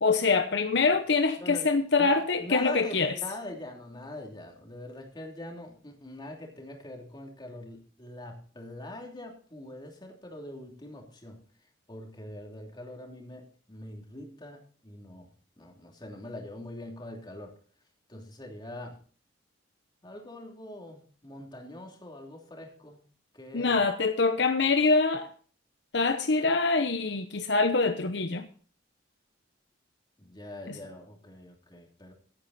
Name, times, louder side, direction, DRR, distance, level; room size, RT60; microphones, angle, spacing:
voice 1, 0.0-3.1 23.5-25.3 25.9-28.5 30.7-30.8, left 4 dB, 65° left, 0.8 m, -25 dB
voice 2, 1.4-1.7 2.0-11.4 11.9-15.3 15.6-17.5 18.1-19.0 20.0-23.0 23.3-23.8 30.2-32.1, left 1 dB, 25° left, 3.0 m, -43 dB
15.5 x 9.6 x 4.2 m
head